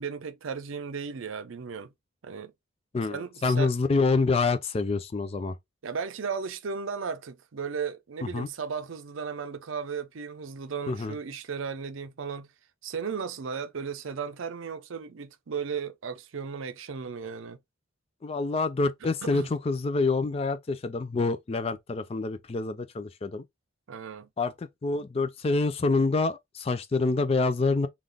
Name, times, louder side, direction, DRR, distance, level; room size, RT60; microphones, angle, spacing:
voice 1, 0.0-1.9 2.2-2.5 3.1-3.7 5.8-12.5 12.8-17.6 19.2-19.5 23.9-24.3, right 6 dB, 80° right, 0.5 m, -35 dB
voice 2, 2.9-5.6 8.2-8.5 10.9-11.2 18.2-23.4 24.4-27.9, left 3 dB, 30° left, 0.3 m, -27 dB
3.7 x 2.4 x 3.3 m
head